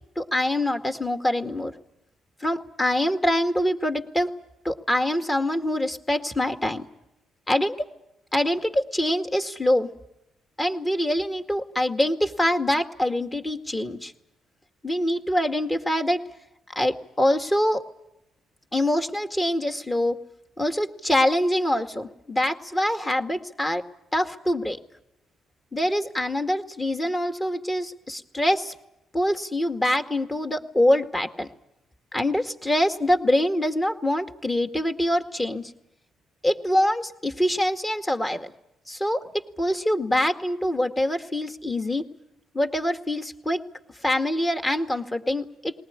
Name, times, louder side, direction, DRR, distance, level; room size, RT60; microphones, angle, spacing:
voice 1, 0.2-1.7 2.4-4.3 4.6-6.9 7.5-7.8 8.3-9.9 10.6-14.1 14.8-16.2 16.8-17.8 18.7-20.2 20.6-23.8 24.1-24.8 25.7-28.7 29.1-31.5 32.1-35.6 36.4-38.5 38.9-39.3 39.6-42.0 42.5-43.6 44.0-45.7, left 1 dB, 15° left, 7 dB, 2.1 m, -24 dB
20.5 x 19.5 x 9.6 m, 0.83 s
cardioid pair, 90°, 0 cm